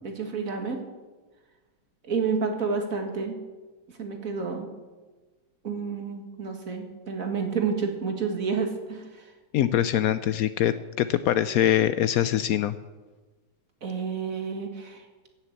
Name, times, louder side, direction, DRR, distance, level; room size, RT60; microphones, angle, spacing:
voice 1, 0.0-0.8 2.0-3.4 4.0-4.7 5.6-9.3 13.8-15.1, right 5 dB, 45° right, 4 dB, 2.1 m, -30 dB
voice 2, 9.5-12.7, left 11 dB, 90° left, 13 dB, 0.7 m, -23 dB
16.0 x 7.3 x 8.0 m, 1.3 s
omnidirectional pair, 2.1 m